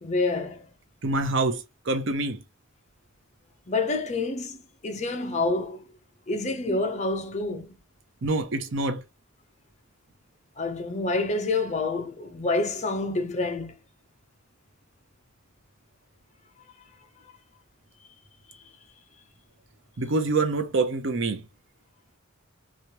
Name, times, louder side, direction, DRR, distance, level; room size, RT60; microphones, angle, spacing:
voice 1, 0.0-0.7 3.7-4.6 4.8-5.8 6.3-7.7 10.6-13.8, left 3 dB, 35° left, 0.6 m, -27 dB
voice 2, 1.0-2.4 8.2-9.0 20.0-21.4, right 3 dB, 65° right, 0.7 m, -26 dB
3.0 x 2.4 x 2.8 m
head